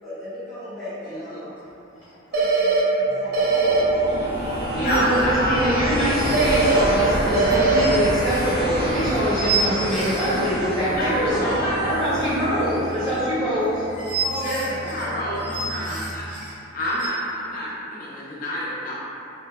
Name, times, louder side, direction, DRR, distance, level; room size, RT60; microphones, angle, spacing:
voice 1, 0.0-1.5 2.3-3.4 3.7-4.2 11.3-11.6 14.2-15.4, equal, ahead, -15 dB, 0.9 m, -35 dB
voice 2, 1.1-1.4 4.7-5.8 10.8-12.1 14.4-16.2 16.7-19.0, equal, 45° left, -7 dB, 0.4 m, -27 dB
sound 1, 1.7-1.8 2.0-2.1 4.8-10.3 12.5-17.1, right 3 dB, 30° left, 0.9 m, -32 dB
sound 2, 2.3-2.8 3.3-3.8 6.3-6.8 7.3-7.8, right 3 dB, 50° right, 0.3 m, -20 dB
sound 3, 3.0-16.3, equal, 80° right, 1.4 m, -29 dB
voice 3, 4.7-13.8, equal, 30° right, -14 dB, 1.2 m, -24 dB
2.7 x 2.2 x 2.2 m, 2.8 s
head